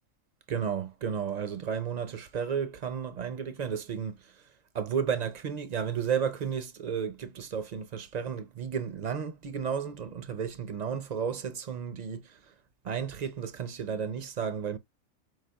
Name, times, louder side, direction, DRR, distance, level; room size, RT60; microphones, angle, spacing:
voice 1, 0.5-4.5 4.7-12.5 12.8-14.8, right 7 dB, 55° right, 0.4 m, -33 dB
4.9 x 4.0 x 2.3 m
omnidirectional pair, 1.4 m